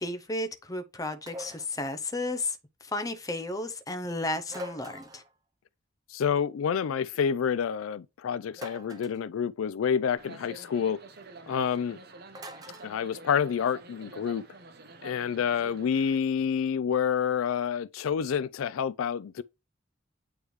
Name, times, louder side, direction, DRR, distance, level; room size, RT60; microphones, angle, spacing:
voice 1, 0.0-5.2, left 2 dB, 15° left, 0.7 m, -33 dB
sound 1, 1.3-1.8 4.5-5.3 8.5-9.2 12.3-12.9, equal, 20° right, 0.6 m, -42 dB
voice 2, 6.1-11.0 11.5-12.0 12.8-14.4 15.0-19.4, left 7 dB, 85° left, 0.4 m, -28 dB
sound 2, 10.2-16.2, right 3 dB, 50° right, 1.0 m, -48 dB
9.1 x 3.2 x 3.2 m
head